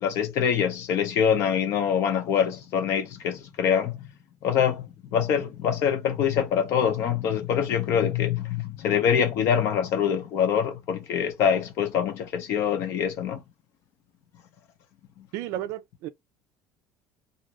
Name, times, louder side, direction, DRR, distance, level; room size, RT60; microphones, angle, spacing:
voice 1, 0.0-4.0 4.4-13.4 15.2-15.3, left 8 dB, 50° left, 0.7 m, -24 dB
voice 2, 15.3-16.1, right 13 dB, 60° right, 0.4 m, -33 dB
2.6 x 2.5 x 3.0 m
cardioid pair, 170°, 6 cm